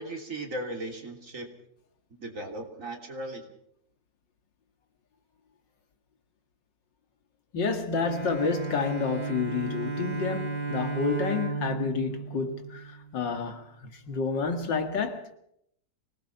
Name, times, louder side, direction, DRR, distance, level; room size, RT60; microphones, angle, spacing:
voice 1, 0.0-1.5 2.1-3.5, right 1 dB, 45° right, 3.5 m, -37 dB
voice 2, 7.5-15.3, left 5 dB, 85° left, 2.7 m, -30 dB
Bowed string instrument, 8.0-13.4, right 4 dB, 85° right, 3.0 m, -34 dB
25.0 x 19.0 x 5.8 m
omnidirectional pair, 1.9 m